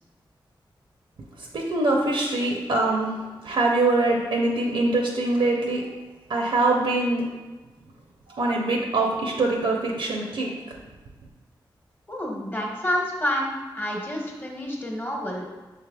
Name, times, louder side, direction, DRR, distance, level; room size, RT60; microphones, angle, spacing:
voice 1, 1.5-5.9 6.3-7.3 8.3-10.5, right 2 dB, 80° right, 0 dB, 0.5 m, -23 dB
voice 2, 12.1-15.5, equal, 20° left, -1 dB, 1.1 m, -29 dB
6.1 x 3.4 x 2.2 m, 1.2 s
cardioid pair, 55°, 9 cm